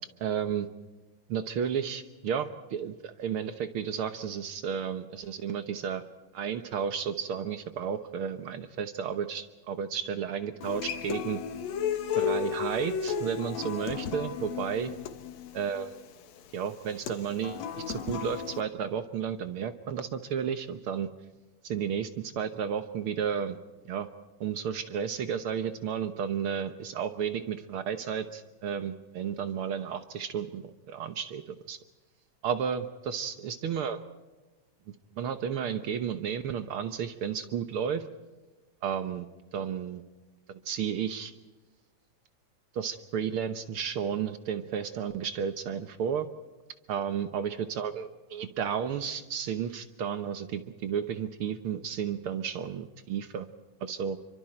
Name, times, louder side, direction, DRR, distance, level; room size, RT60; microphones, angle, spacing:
voice 1, 0.2-0.7 1.3-6.0 6.3-11.4 12.2-14.9 15.5-16.0 16.5-21.1 21.6-23.6 23.8-24.1 24.4-31.8 32.4-34.0 35.2-38.0 38.8-39.2 39.5-40.0 40.6-41.3 42.7-46.3 46.9-53.5 53.8-54.2, right 7 dB, 65° right, 10 dB, 1.4 m, -32 dB
Human voice / Acoustic guitar, 10.6-18.6, left 7 dB, 65° left, 2.4 m, -34 dB
28.5 x 24.5 x 4.4 m, 1.2 s
omnidirectional pair, 3.5 m